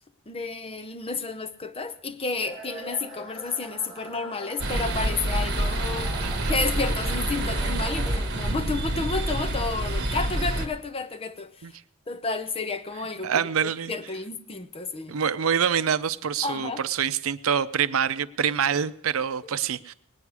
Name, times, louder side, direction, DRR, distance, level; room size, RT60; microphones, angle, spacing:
voice 1, 0.3-6.1 6.5-11.8 12.1-15.2 16.4-16.8, left 4 dB, 30° left, 0.7 m, -31 dB
sound 1, 2.4-8.6, right 2 dB, ahead, 3.7 m, -42 dB
sound 2, 4.6-10.7, right 1 dB, 55° right, 1.4 m, -27 dB
voice 2, 6.2-6.5 11.6-11.7 13.2-13.9 15.1-19.9, right 7 dB, 80° right, 0.5 m, -26 dB
19.0 x 9.6 x 4.8 m
head